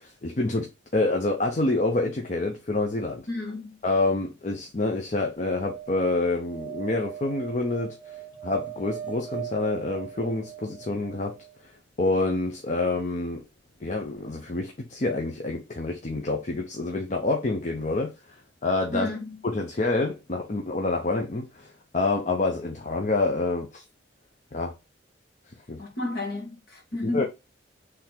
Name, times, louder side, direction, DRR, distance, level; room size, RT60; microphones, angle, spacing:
voice 1, 0.0-3.3 3.8-8.2 8.4-11.4 11.6-11.7 12.0-13.4 13.8-18.1 18.6-19.1 19.4-23.8 24.5-24.7 25.7-25.8 27.1-27.2, left 2 dB, 40° left, 0.6 m, -27 dB
voice 2, 3.3-3.8 18.9-19.4 25.8-27.2, left 2 dB, 55° left, 1.7 m, -32 dB
sound 1, 5.4-11.6 13.8-13.9 14.1-14.2, right 10 dB, 10° right, 0.5 m, -40 dB
3.7 x 3.3 x 4.4 m
head